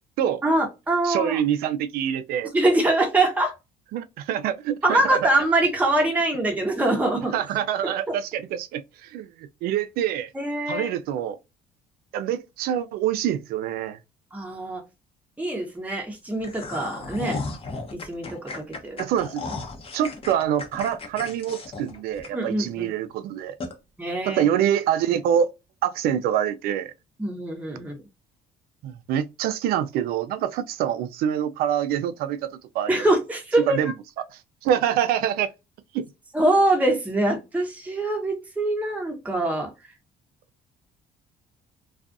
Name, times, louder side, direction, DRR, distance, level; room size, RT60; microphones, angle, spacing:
voice 1, 0.4-1.4 2.4-3.5 4.8-7.3 8.1-8.2 10.3-10.9 14.3-14.8 15.4-17.4 17.9-19.0 22.3-22.9 24.0-24.4 27.2-28.0 32.9-33.9 36.3-39.7, right 1 dB, 10° right, 0.8 m, -24 dB
voice 2, 1.0-2.5 3.9-5.2 7.3-10.3 10.7-11.4 12.1-14.0 19.0-19.4 19.9-23.5 24.3-25.5 25.8-26.9 28.8-32.5 32.7-33.0 33.7-33.9 34.6-35.5 35.9-36.0, right 10 dB, 75° right, 0.4 m, -25 dB
sound 1, 16.4-22.7 23.1-23.2 23.6-23.7, left 3 dB, 35° left, 0.8 m, -35 dB
2.4 x 2.3 x 2.5 m
supercardioid pair, 80°, 16 cm